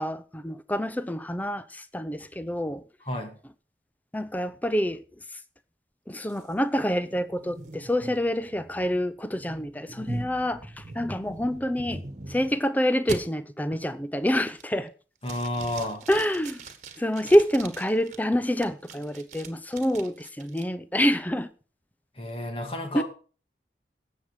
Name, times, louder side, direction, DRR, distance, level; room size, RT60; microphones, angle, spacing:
voice 1, 0.0-2.8 4.1-5.0 6.1-12.0 12.3-14.9 16.1-16.6 17.0-21.5 22.9-23.0, equal, 10° left, 0.6 m, -27 dB
voice 2, 3.0-3.4 15.2-16.0 22.2-23.0, left 1 dB, 30° left, 2.1 m, -31 dB
sound 1, 6.3-12.6 13.1-13.2 13.7-14.0 14.4-14.9 15.2-18.2 18.6-20.6, right 2 dB, 45° right, 1.5 m, -41 dB
17.0 x 7.4 x 4.8 m
head